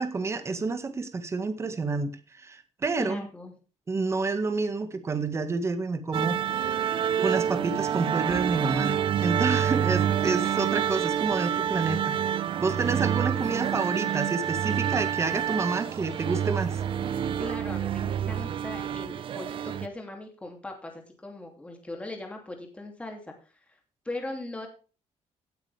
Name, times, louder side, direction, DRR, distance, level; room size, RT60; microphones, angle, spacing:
voice 1, 0.0-2.1 2.4-3.2 3.9-12.2 12.6-16.8, right 4 dB, 25° right, 8 dB, 1.7 m, -29 dB
voice 2, 3.0-3.5 10.2-10.6 17.4-23.8 24.0-24.7, left 2 dB, 10° left, 3 dB, 2.8 m, -39 dB
sound 1, 6.1-19.9, right 9 dB, 50° right, 0.8 m, -28 dB
17.0 x 9.1 x 3.5 m, 0.36 s
cardioid pair, 170°, 12 cm